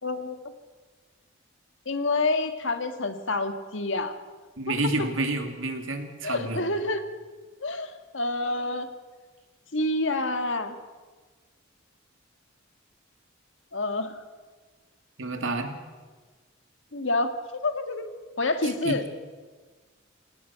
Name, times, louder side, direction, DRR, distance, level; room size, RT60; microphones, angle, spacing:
voice 1, 0.0-0.4 1.8-4.1 6.2-7.1 7.6-8.9 9.7-10.7 13.7-14.2 16.9-17.3 17.6-18.1 18.4-19.0, left 2 dB, 65° left, 8 dB, 1.8 m, -28 dB
voice 2, 4.6-6.6 15.2-15.8 18.6-19.0, right 2 dB, 75° right, 5 dB, 2.7 m, -29 dB
28.0 x 18.5 x 5.9 m, 1.4 s
head